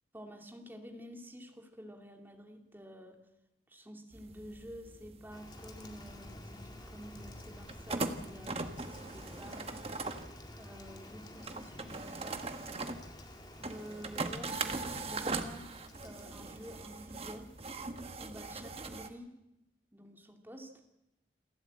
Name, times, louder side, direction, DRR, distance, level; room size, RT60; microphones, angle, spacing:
voice 1, 0.1-3.2 3.7-10.1 10.6-12.4 13.6-15.7 16.0-17.5 18.2-19.3 19.9-20.7, equal, 10° right, 3 dB, 2.5 m, -50 dB
sound 1, 4.1-19.1, right 3 dB, 35° right, 1.3 m, -41 dB
Rain, 5.3-17.7, left 1 dB, 25° left, 2.0 m, -52 dB
27.5 x 12.0 x 8.6 m, 0.90 s
head